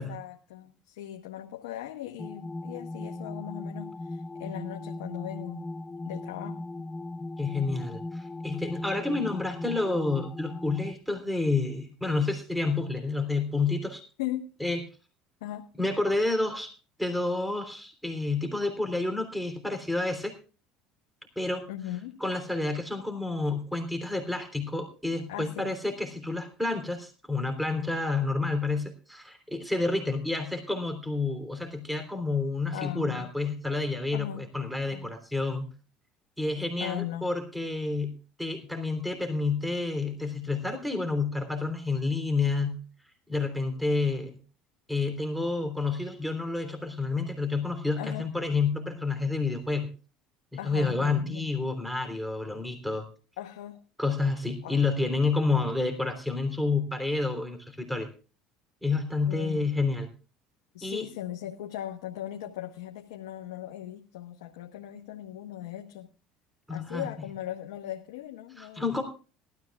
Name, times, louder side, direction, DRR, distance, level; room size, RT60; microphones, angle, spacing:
voice 1, 0.0-5.6 6.0-6.6 14.2-14.5 15.4-15.6 21.7-22.2 25.3-25.7 32.7-33.3 34.1-34.5 34.9-35.1 36.8-37.3 48.0-48.3 50.6-51.5 53.4-53.8 54.6-54.8 59.3-59.7 60.7-66.1 66.7-69.0, left 12 dB, 85° left, 3 dB, 1.1 m, -38 dB
sound 1, 2.2-10.9, left 2 dB, 20° left, 0.7 m, -38 dB
voice 2, 7.4-14.0 14.6-14.8 15.8-16.7 17.0-20.3 21.3-21.6 22.2-35.7 36.4-38.1 38.4-42.8 43.3-44.4 44.9-49.9 50.5-53.1 54.0-58.1 58.8-60.1 60.8-61.0 66.7-67.1 68.6-69.0, left 3 dB, ahead, 5 dB, 3.3 m, -29 dB
20.0 x 13.0 x 2.4 m, 0.35 s
supercardioid pair, 80°, 3 cm